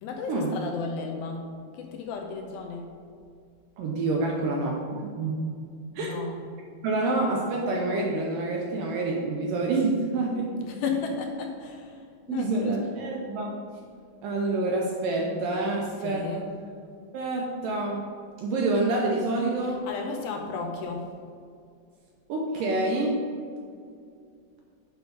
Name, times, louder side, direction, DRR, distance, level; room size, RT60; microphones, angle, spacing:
voice 1, 0.0-3.0 6.0-6.5 10.6-12.9 15.8-16.6 19.6-21.1 22.6-22.7, left 5 dB, 80° left, 2 dB, 2.3 m, -34 dB
voice 2, 3.8-5.4 6.0-6.3 6.8-10.5 12.3-13.6 14.2-16.4 17.1-18.1 18.4-19.8 22.3-23.1, right 2 dB, 75° right, -1 dB, 2.0 m, -27 dB
8.3 x 5.0 x 5.1 m, 2.3 s
omnidirectional pair, 4.6 m